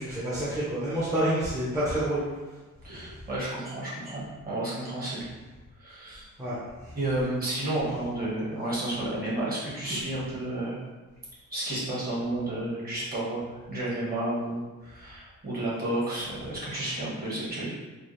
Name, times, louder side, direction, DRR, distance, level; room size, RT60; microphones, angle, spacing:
voice 1, 0.0-2.2 6.4-6.6 6.8-6.9, right 1 dB, 10° right, -11 dB, 0.9 m, -28 dB
voice 2, 2.8-5.3 5.8-6.3 6.9-10.8 11.5-17.8, right 1 dB, 30° right, -7 dB, 1.4 m, -31 dB
4.7 x 2.3 x 3.2 m, 1.2 s
wide cardioid pair, 170°, 31 cm